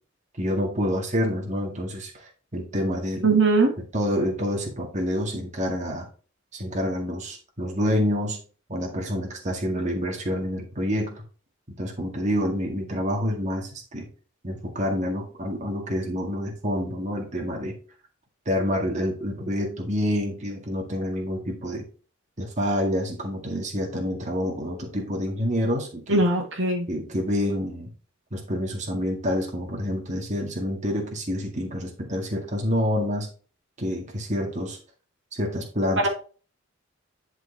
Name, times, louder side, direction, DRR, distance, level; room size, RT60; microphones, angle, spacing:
voice 1, 0.4-3.3 3.9-6.1 6.5-8.4 8.7-11.2 11.8-14.1 14.4-17.8 18.5-21.9 22.4-26.2 26.9-27.9 28.3-33.3 33.8-34.8 35.3-36.1, equal, 35° right, 0 dB, 1.9 m, -27 dB
voice 2, 3.2-3.7 26.1-26.9 36.0-36.1, right 3 dB, 60° right, 2 dB, 1.9 m, -20 dB
10.5 x 4.8 x 3.3 m, 0.38 s
head